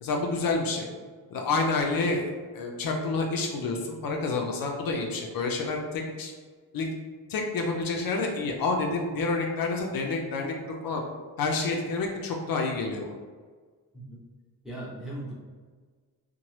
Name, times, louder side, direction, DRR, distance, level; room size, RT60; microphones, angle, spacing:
voice 1, 0.0-0.9 1.3-6.3 6.7-6.9 7.3-10.5 10.8-11.0 11.4-13.1, left 3 dB, 70° left, 1 dB, 0.5 m, -28 dB
voice 2, 14.6-15.4, right 1 dB, ahead, -7 dB, 0.7 m, -38 dB
2.9 x 2.1 x 3.0 m, 1.5 s
wide cardioid pair, 125°, 37 cm